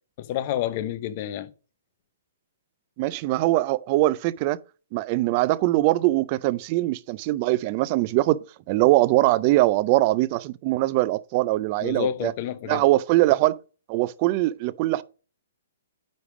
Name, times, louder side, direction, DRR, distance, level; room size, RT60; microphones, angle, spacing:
voice 1, 0.2-1.5 11.8-12.9, left 11 dB, 35° left, 0.6 m, -29 dB
voice 2, 3.0-4.6 4.9-12.3 12.7-13.6 13.9-15.0, right 18 dB, 30° right, 0.3 m, -22 dB
9.2 x 3.4 x 4.8 m
hypercardioid pair, 170°, 0 cm